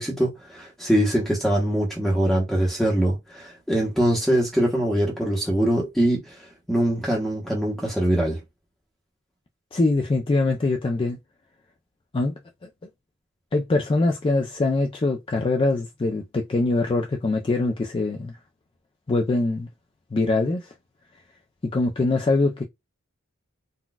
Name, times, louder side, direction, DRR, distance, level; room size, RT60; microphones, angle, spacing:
voice 1, 0.0-6.3 6.7-8.4, right 1 dB, ahead, 0.8 m, -23 dB
voice 2, 9.7-11.2 12.1-12.3 12.6-12.7 13.5-18.3 19.1-19.7 20.1-20.7 21.7-22.6, left 2 dB, 25° left, 0.4 m, -23 dB
3.9 x 2.2 x 2.2 m
head